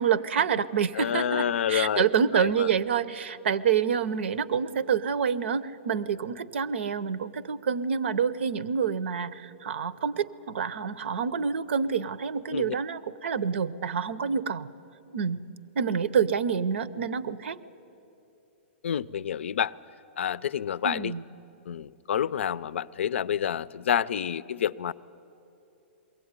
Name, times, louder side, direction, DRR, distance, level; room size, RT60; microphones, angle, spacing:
voice 1, 0.0-14.7 15.1-15.4 15.8-17.6 20.8-21.2, right 7 dB, 75° right, 17 dB, 0.7 m, -27 dB
voice 2, 0.9-2.1 2.3-2.7 12.5-12.7 18.8-19.7 20.2-21.1 21.7-24.9, left 9 dB, 80° left, 18 dB, 0.5 m, -28 dB
22.0 x 16.5 x 9.6 m, 3.0 s
hypercardioid pair, 160°, 6 cm